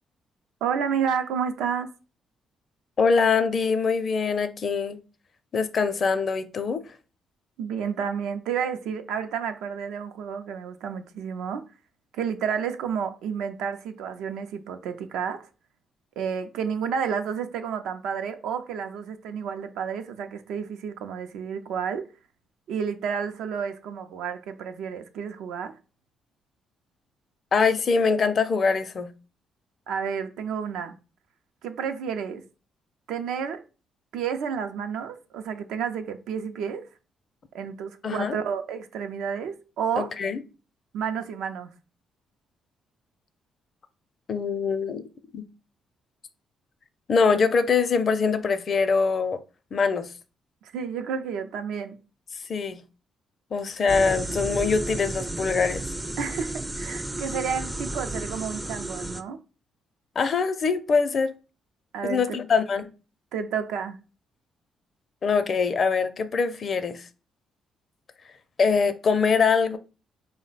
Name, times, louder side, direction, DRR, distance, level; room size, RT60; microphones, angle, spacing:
voice 1, 0.6-1.9 7.6-11.6 12.1-15.5 16.2-22.1 22.7-25.7 29.9-31.0 31.6-32.4 33.1-33.6 34.1-36.9 37.5-40.1 40.9-41.7 50.6-52.0 56.2-59.4 61.9-62.4 63.3-64.0, right 7 dB, 85° right, 0.5 m, -30 dB
voice 2, 3.0-5.0 5.5-6.8 27.5-29.1 38.0-38.4 40.0-40.4 44.3-45.0 45.3-45.4 47.1-49.4 49.7-50.1 52.5-52.8 53.5-55.8 60.2-61.3 62.0-62.9 65.2-67.1 68.6-69.8, left 5 dB, 50° left, 0.5 m, -23 dB
sound 1, 53.9-59.2, right 2 dB, 10° right, 0.4 m, -33 dB
4.5 x 2.1 x 4.0 m
cardioid pair, 90°, 0 cm